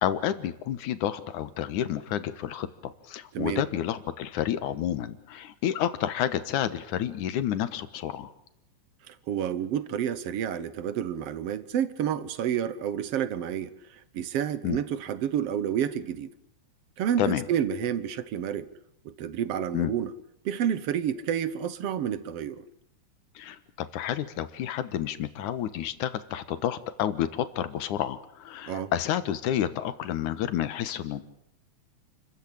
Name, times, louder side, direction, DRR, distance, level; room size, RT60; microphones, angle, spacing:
voice 1, 0.0-8.3 14.6-14.8 17.2-17.5 19.7-19.9 23.4-31.2, left 10 dB, 85° left, 12 dB, 2.8 m, -30 dB
voice 2, 9.1-16.3 17.0-18.7 19.1-20.1 20.5-22.6 28.7-28.9, right 9 dB, 60° right, 15 dB, 2.0 m, -29 dB
29.0 x 15.0 x 8.8 m, 0.78 s
omnidirectional pair, 3.4 m